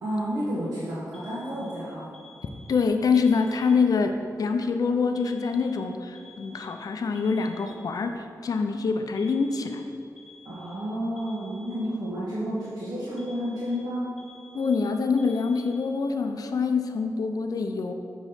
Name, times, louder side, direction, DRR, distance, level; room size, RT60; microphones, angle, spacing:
voice 1, 0.0-2.1 10.4-14.1, equal, 70° right, -9 dB, 1.4 m, -31 dB
Alarm, 1.1-4.1 5.1-8.1 9.2-12.1 13.2-16.1, left 2 dB, ahead, 1.0 m, -52 dB
voice 2, 2.7-9.8 14.5-17.9, left 5 dB, 60° left, 6 dB, 0.5 m, -25 dB
6.3 x 5.0 x 5.7 m, 2.5 s
wide cardioid pair, 110°, 7 cm